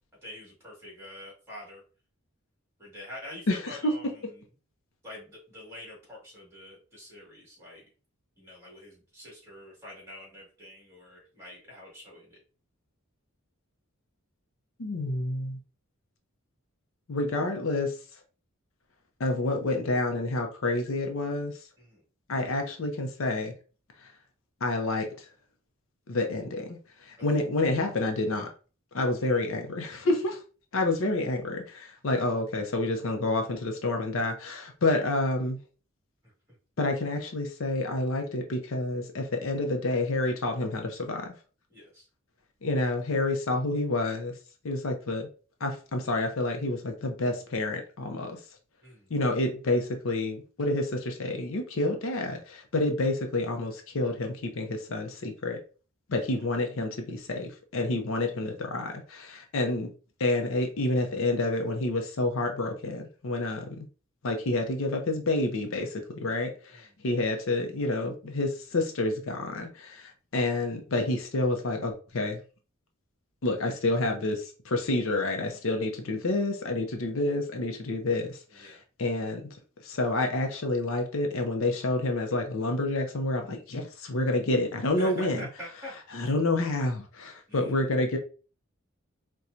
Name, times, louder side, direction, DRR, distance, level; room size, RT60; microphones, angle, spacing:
voice 1, 0.2-1.8 2.8-4.2 5.0-7.8 8.4-12.4 21.8-22.0 27.2-27.3 29.2-29.4 32.1-32.3 41.7-42.1 48.8-49.1 66.7-66.8 78.6-78.8 85.0-85.9 87.5-87.8, left 1 dB, 10° right, -5 dB, 1.6 m, -45 dB
voice 2, 3.5-3.9 14.8-15.6 17.1-18.0 19.2-21.5 22.3-23.5 24.0-24.1 24.6-25.3 26.1-28.5 28.9-30.4 30.7-35.6 36.8-41.3 42.6-44.3 44.6-45.3 45.6-48.4 49.1-55.6 56.1-59.9 60.2-63.9 64.2-72.4 73.4-79.6 79.8-85.4 86.1-88.2, left 2 dB, 65° left, 4 dB, 0.6 m, -29 dB
4.2 x 2.2 x 2.5 m, 0.36 s
head